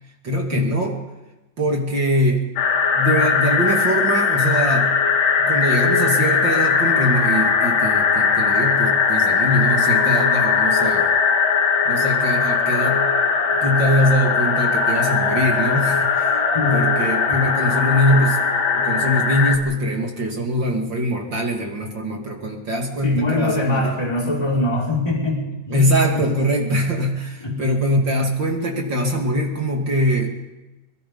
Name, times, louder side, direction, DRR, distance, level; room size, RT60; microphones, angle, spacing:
voice 1, 0.2-1.0 1.6-2.5 2.9-4.9 5.4-11.1 11.9-13.1 13.6-16.4 16.7-18.4 18.7-23.9 25.7-30.4, equal, 35° right, 2 dB, 2.6 m, -22 dB
sound 1, 2.6-19.6, left 5 dB, 55° left, 2.8 m, -19 dB
voice 2, 16.5-16.9 23.0-26.3 27.4-27.6, left 2 dB, 10° left, -3 dB, 5.0 m, -23 dB
23.5 x 22.5 x 5.5 m, 1.1 s
omnidirectional pair, 3.9 m